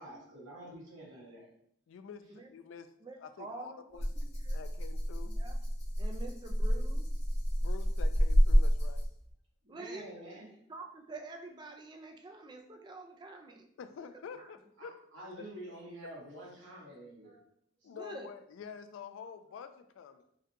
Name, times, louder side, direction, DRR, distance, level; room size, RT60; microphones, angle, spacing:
voice 1, 0.0-1.5 9.6-10.5 14.8-17.4 17.8-17.9, right 1 dB, 80° right, -5 dB, 1.4 m, -48 dB
voice 2, 1.9-2.2 2.5-2.9 3.2-4.1 4.5-5.3 7.5-9.0 13.8-14.9 15.3-15.4 17.8-20.2, left 6 dB, 85° left, 10 dB, 0.3 m, -47 dB
voice 3, 3.0-4.6 5.3-5.5 6.0-7.1 9.7-10.1 10.3-10.4 10.7-13.7 14.0-14.1 14.4-14.5 17.9-18.3, right 2 dB, 25° right, 3 dB, 0.3 m, -47 dB
Rattle (instrument), 4.0-9.3, equal, 35° left, 0.9 m, -29 dB
3.7 x 2.2 x 2.8 m, 0.70 s
head